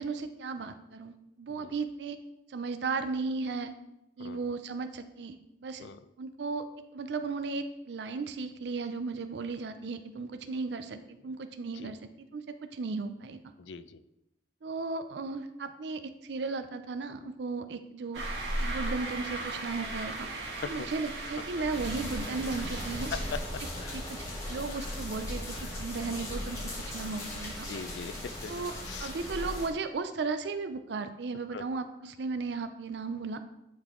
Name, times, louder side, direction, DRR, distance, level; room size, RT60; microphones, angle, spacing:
voice 1, 0.0-2.2 2.5-3.7 4.2-5.9 6.2-6.7 6.9-12.0 12.3-13.4 14.6-18.2 18.6-20.3 20.6-23.1 23.6-24.0 24.5-25.4 25.8-26.6 26.9-27.7 28.5-28.7 29.0-33.4, right 4 dB, 65° right, 9 dB, 0.4 m, -35 dB
voice 2, 13.6-14.0 20.6-20.9 22.6-22.7 23.1-23.4 23.8-24.0 25.6-25.8 27.0-27.1 27.6-28.5 28.8-29.1 31.5-31.6, left 5 dB, 75° left, 13 dB, 0.4 m, -41 dB
sound 1, 18.1-23.4, right 1 dB, 85° right, 2.0 m, -36 dB
sound 2, 21.7-29.7, left 1 dB, 20° left, 2.1 m, -38 dB
10.5 x 3.9 x 3.7 m, 0.89 s
head